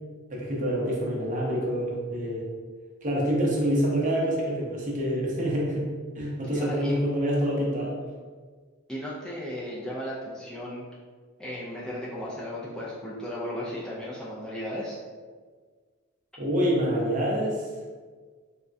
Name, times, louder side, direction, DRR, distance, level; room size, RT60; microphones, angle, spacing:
voice 1, 0.3-2.5 3.0-5.9 6.1-8.0 16.4-17.7, equal, 40° right, -4 dB, 0.7 m, -26 dB
voice 2, 6.5-7.0 8.9-10.8 11.4-15.0, equal, 5° left, -8 dB, 0.4 m, -35 dB
3.5 x 2.2 x 2.5 m, 1.5 s
head